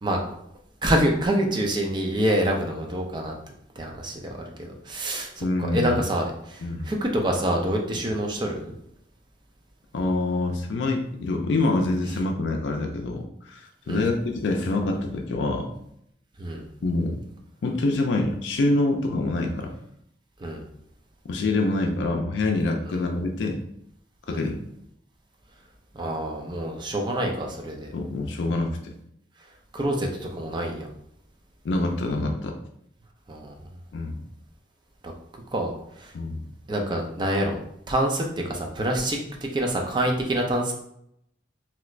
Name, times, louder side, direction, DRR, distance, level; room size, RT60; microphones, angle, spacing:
voice 1, 0.0-0.4 0.8-3.3 3.8-8.8 13.9-14.1 16.4-16.7 20.4-20.6 22.9-23.0 24.3-24.5 25.9-27.9 29.7-30.8 33.3-33.5 35.0-35.1 35.5-36.1 36.7-37.6 37.9-40.7, right 1 dB, 25° right, 1 dB, 0.4 m, -26 dB
voice 2, 5.4-6.0 6.6-6.9 9.9-15.7 16.8-17.2 17.6-19.7 21.2-23.6 24.3-24.5 27.9-28.9 31.6-32.6 33.9-34.2 36.1-36.4, left 2 dB, 75° left, 3 dB, 0.4 m, -26 dB
3.2 x 2.9 x 2.4 m, 0.74 s
head